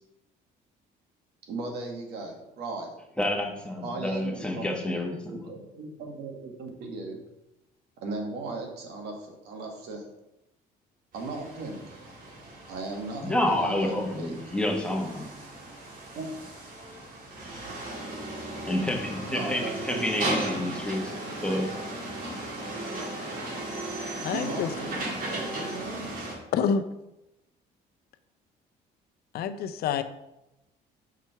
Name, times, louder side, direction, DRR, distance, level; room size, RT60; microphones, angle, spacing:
voice 1, 1.5-2.9 3.8-7.2 8.0-10.0 11.1-11.9 12.7-14.4 16.2-16.3 19.3-20.2 24.3-26.3, right 3 dB, 75° right, 1 dB, 1.8 m, -37 dB
voice 2, 3.2-5.4 13.2-15.3 18.7-21.1 21.4-21.7, left 1 dB, 5° left, 0 dB, 1.4 m, -29 dB
sound 1, 11.1-26.3, right 2 dB, 55° right, 2.4 m, -36 dB
voice 3, 24.2-24.7 26.5-26.8 29.3-30.0, left 7 dB, 70° left, 10 dB, 0.6 m, -27 dB
5.9 x 4.5 x 5.7 m, 0.90 s
cardioid pair, 110°, 17 cm